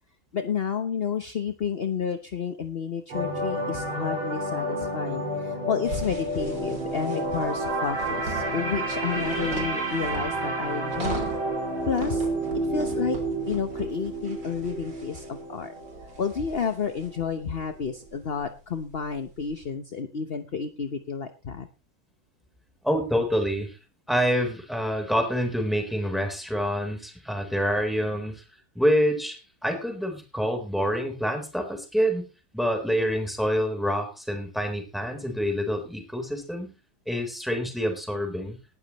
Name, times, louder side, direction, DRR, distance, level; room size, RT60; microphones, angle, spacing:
voice 1, 0.3-11.3 11.9-12.3 12.6-13.2 13.5-15.7 16.2-21.7, left 6 dB, 40° left, 8 dB, 0.9 m, -31 dB
sound 1, 3.1-17.3 17.6-17.8, right 1 dB, 90° right, 5.9 m, -30 dB
sound 2, 5.8-19.6, right 3 dB, 60° right, 4.1 m, -40 dB
voice 2, 22.8-23.8 24.1-28.4 28.8-32.3 32.5-36.7 37.1-38.6, equal, ahead, 4 dB, 3.8 m, -27 dB
18.5 x 12.5 x 3.1 m, 0.30 s
omnidirectional pair, 2.2 m